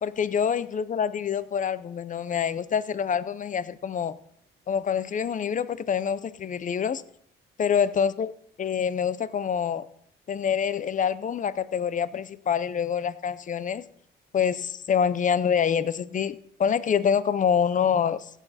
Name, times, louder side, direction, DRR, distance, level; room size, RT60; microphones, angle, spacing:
voice 1, 0.0-4.2 4.7-7.0 7.6-8.3 8.6-9.9 10.3-13.8 14.3-18.3, left 7 dB, 40° left, 16 dB, 0.6 m, -26 dB
16.0 x 7.3 x 4.2 m, 0.72 s
cardioid pair, 90°, 20 cm